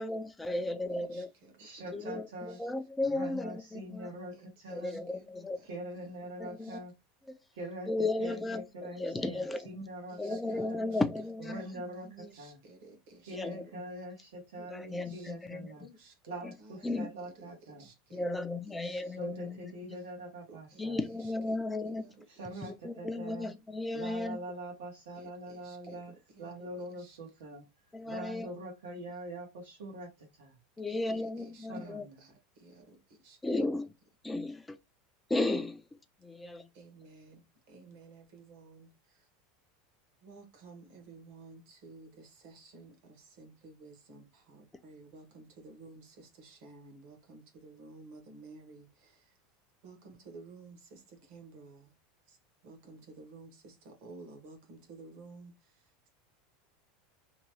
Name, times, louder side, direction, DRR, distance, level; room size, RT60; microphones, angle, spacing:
voice 1, 0.0-1.3 1.9-4.1 4.7-5.6 6.4-6.8 7.3-7.4 7.9-8.6 8.9-9.7 10.2-11.6 13.3-13.7 14.7-15.7 16.8-17.1 18.1-19.7 20.8-22.0 22.7-24.4 25.9-26.0 27.9-28.5 30.8-32.1 33.4-33.8 34.2-34.8 35.3-35.8 36.2-36.6, left 2 dB, 10° left, 0.3 m, -34 dB
voice 2, 0.9-1.5 1.9-2.1 2.5-2.6 4.3-5.7 6.0-6.8 10.1-10.4 10.7-11.0 11.5-13.4 13.7-13.8 14.6-14.7 14.9-15.3 15.8-16.2 16.6-17.1 17.3-19.0 19.4-19.6 20.5-20.9 21.2-22.1 22.5-22.7 25.1-26.0 26.3-26.5 27.0-27.2 30.9-32.3 32.6-33.0 33.2-33.4 36.7-39.3 40.2-49.4 49.8-51.9 52.3-52.4 52.6-56.1, right 3 dB, 55° right, 1.1 m, -54 dB
voice 3, 1.6-2.6 3.1-5.0 5.6-6.9 7.5-7.9 8.2-11.0 11.5-12.6 13.2-15.9 16.3-17.9 19.0-21.0 22.4-23.5 23.9-26.1 26.4-27.7 28.0-30.6 31.7-32.2, right 1 dB, 85° right, 1.2 m, -44 dB
2.9 x 2.2 x 3.0 m
supercardioid pair, 155°, 0 cm